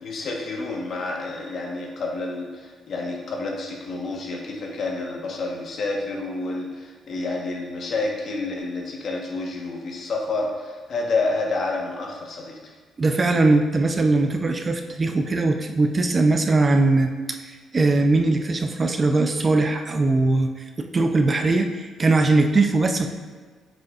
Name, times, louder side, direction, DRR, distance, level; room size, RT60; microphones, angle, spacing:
voice 1, 0.0-12.6, left 3 dB, 60° left, 0 dB, 1.2 m, -29 dB
voice 2, 13.0-23.1, right 2 dB, 30° right, 6 dB, 0.5 m, -20 dB
7.6 x 5.1 x 2.5 m, 1.5 s
cardioid pair, 90°, 0 cm